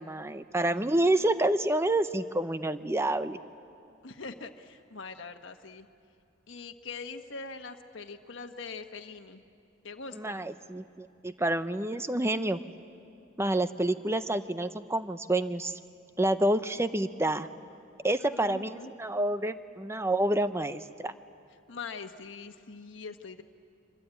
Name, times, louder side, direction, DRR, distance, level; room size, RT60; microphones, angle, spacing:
voice 1, 0.0-3.4 10.1-12.6 13.4-15.7 16.2-17.5 18.0-21.1, right 1 dB, 15° right, 11 dB, 0.7 m, -28 dB
voice 2, 4.0-5.9 6.5-9.4 9.8-10.4 18.2-18.9 21.7-23.4, left 4 dB, 75° left, 5 dB, 1.2 m, -43 dB
25.5 x 24.0 x 9.1 m, 2.5 s
head